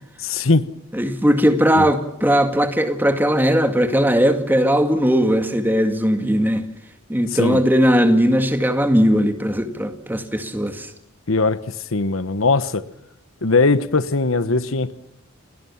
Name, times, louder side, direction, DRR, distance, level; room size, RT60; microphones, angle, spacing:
voice 1, 0.2-0.6 1.7-1.9 7.4-7.6 11.3-11.6 11.9-12.8 13.4-14.9, left 3 dB, 80° left, 1.2 m, -19 dB
voice 2, 0.9-6.6 7.1-10.9, equal, 10° right, 2.1 m, -18 dB
29.5 x 21.0 x 7.3 m
head